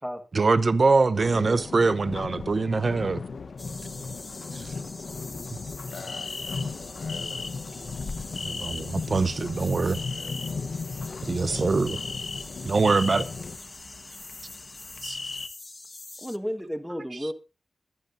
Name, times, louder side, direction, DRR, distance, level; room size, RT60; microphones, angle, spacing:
voice 1, 0.3-3.2 4.5-4.7 8.4-10.0 11.3-12.0 12.6-13.3 15.0-15.2, right 3 dB, 50° right, 0.8 m, -23 dB
sound 1, 1.1-13.6, left 4 dB, 70° left, 0.9 m, -36 dB
voice 2, 1.3-1.7 11.0-11.2 16.2-17.3, equal, ahead, 1.4 m, -33 dB
sound 2, 3.6-16.4, left 2 dB, 25° left, 0.7 m, -44 dB
voice 3, 5.9-7.6 10.0-10.3 11.1-11.6, left 4 dB, 85° left, 3.9 m, -46 dB
sound 3, 5.9-15.5, left 4 dB, 50° left, 1.3 m, -39 dB
22.0 x 9.0 x 2.6 m
wide cardioid pair, 130°, 0 cm